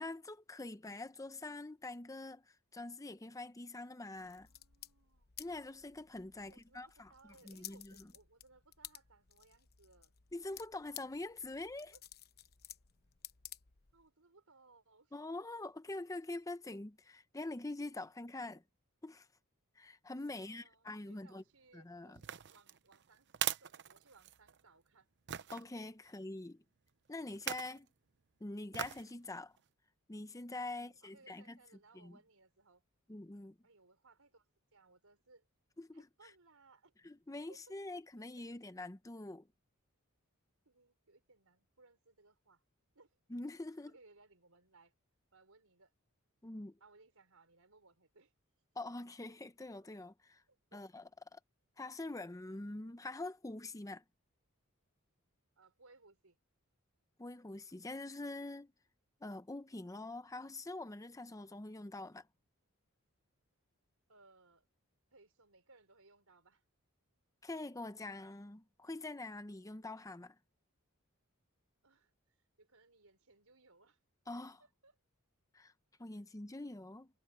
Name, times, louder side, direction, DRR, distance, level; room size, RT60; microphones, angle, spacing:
voice 1, 0.0-4.5 5.4-7.1 7.4-8.1 10.3-11.9 15.1-18.6 19.0-19.3 19.8-21.4 21.7-22.2 25.5-26.6 27.1-27.9 28.4-29.5 30.1-31.6 31.9-32.2 33.1-33.5 35.8-36.3 37.0-39.5 43.3-43.9 46.4-46.7 48.8-50.4 50.7-51.4 51.8-54.0 57.2-58.7 59.2-62.3 67.4-70.4 74.3-74.6 75.5-75.7 76.0-77.1, left 2 dB, 15° left, 0.7 m, -45 dB
sound 1, 4.1-14.1, left 12 dB, 45° left, 0.9 m, -55 dB
voice 2, 4.3-5.3 6.4-10.1 11.9-12.0 13.9-15.1 20.3-23.3 23.6-25.1 26.0-26.1 30.8-32.8 33.6-34.4 34.7-35.5 35.9-36.9 37.5-37.6 40.6-42.6 42.9-43.2 43.9-44.9 45.3-45.9 46.8-48.3 50.5-50.8 55.6-56.4 64.1-64.7 65.1-66.6 71.8-72.1 72.6-74.0 74.6-75.0, right 3 dB, 70° right, 4.9 m, -65 dB
sound 2, 22.2-24.6 25.3-25.6 27.3-27.8 28.7-29.1 29.6-29.7, right 10 dB, 55° right, 0.7 m, -40 dB
head